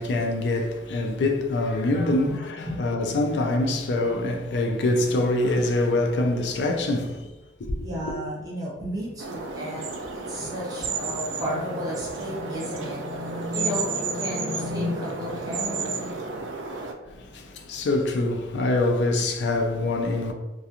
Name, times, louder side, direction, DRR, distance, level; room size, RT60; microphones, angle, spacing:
voice 1, 0.0-7.3 7.6-7.9 17.1-20.3, left 2 dB, 70° left, 0.4 m, -25 dB
voice 2, 2.1-2.4 2.6-3.4 7.8-16.4, equal, 20° right, 0.7 m, -33 dB
sound 1, 9.2-16.9, right 4 dB, 85° right, 0.4 m, -32 dB
2.4 x 2.2 x 2.8 m
head